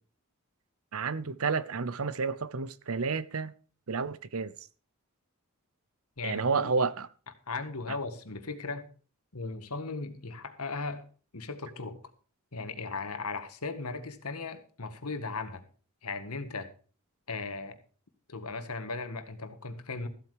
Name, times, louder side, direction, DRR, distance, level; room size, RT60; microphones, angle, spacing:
voice 1, 0.9-3.5 3.9-4.5 6.2-7.1 7.9-8.0, right 4 dB, 75° right, 0.8 m, -30 dB
voice 2, 6.2-6.8 7.5-8.9 9.3-11.0 11.3-12.0 12.5-15.6 16.0-16.7 17.3-17.8 18.3-20.1, left 3 dB, 85° left, 1.8 m, -37 dB
14.5 x 8.2 x 4.9 m
head